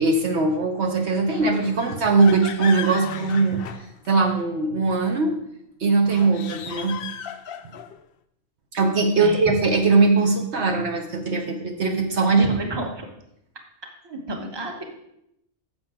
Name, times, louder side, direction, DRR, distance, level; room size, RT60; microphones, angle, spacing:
voice 1, 0.0-3.6 4.1-5.4 5.8-7.0 8.8-12.5, right 3 dB, 60° right, 3 dB, 1.2 m, -20 dB
sound 1, 1.3-4.4 6.0-8.0, left 8 dB, 60° left, 0.7 m, -36 dB
voice 2, 12.4-13.1 14.0-14.8, right 1 dB, 20° right, 2 dB, 1.1 m, -30 dB
10.5 x 7.4 x 3.7 m, 0.78 s
omnidirectional pair, 1.3 m